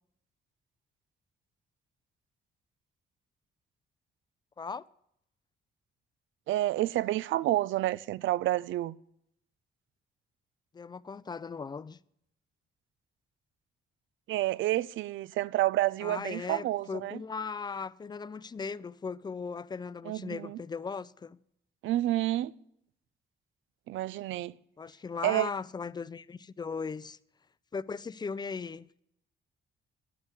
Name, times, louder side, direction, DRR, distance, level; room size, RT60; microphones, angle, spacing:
voice 1, 6.5-8.9 14.3-17.2 20.1-20.6 21.8-22.5 23.9-24.5 25.2-25.5, right 15 dB, 75° right, 0.4 m, -29 dB
voice 2, 10.7-12.0 16.0-21.4 24.8-27.2 27.7-28.9, left 5 dB, 20° left, 0.4 m, -38 dB
9.5 x 7.3 x 8.1 m
cardioid pair, 90°, 20 cm